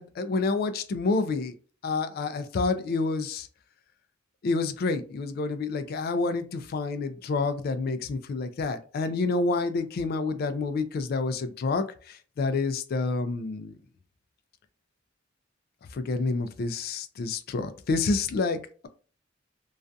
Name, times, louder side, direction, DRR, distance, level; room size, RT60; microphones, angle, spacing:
voice 1, 0.0-1.5 1.8-3.5 4.4-11.9 12.4-13.8 15.9-18.6, left 3 dB, 50° left, 11 dB, 0.3 m, -28 dB
2.5 x 2.3 x 2.2 m, 0.40 s
head